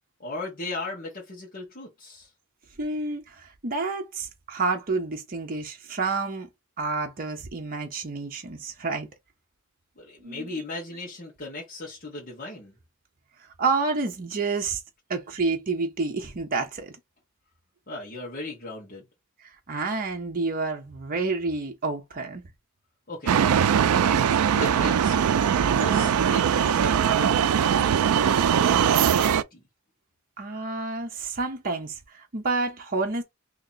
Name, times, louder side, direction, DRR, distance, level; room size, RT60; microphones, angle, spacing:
voice 1, 0.2-2.3 10.0-12.7 17.9-19.0 23.1-23.6 23.9-24.3 24.6-25.3 25.8-28.0 29.2-29.6, left 2 dB, 45° left, 1.2 m, -37 dB
voice 2, 2.8-6.5 6.8-9.1 10.2-10.5 13.6-14.8 15.1-17.0 19.4-22.4 25.7-26.1 30.4-33.2, right 3 dB, 40° right, 0.7 m, -29 dB
sound 1, 23.3-29.4, right 8 dB, 90° right, 0.4 m, -21 dB
2.9 x 2.8 x 3.8 m
head